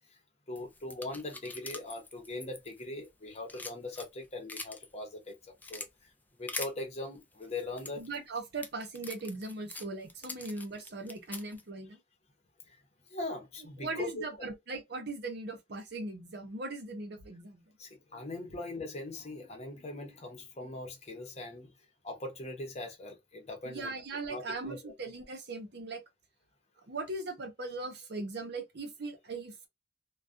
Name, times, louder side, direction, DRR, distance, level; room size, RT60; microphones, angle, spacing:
voice 1, 0.5-6.1 6.4-8.1 12.7-12.8 13.1-14.5 17.8-21.7 22.0-23.9 24.3-24.9, left 2 dB, 35° left, 0.8 m, -41 dB
sound 1, 0.6-3.1 3.4-4.9 5.3-5.9 6.5-6.7 7.4-11.6, left 3 dB, 10° left, 0.3 m, -43 dB
voice 2, 8.0-12.0 13.8-17.6 23.7-26.0 26.9-29.7, right 2 dB, 60° right, 0.7 m, -39 dB
2.3 x 2.2 x 2.5 m
head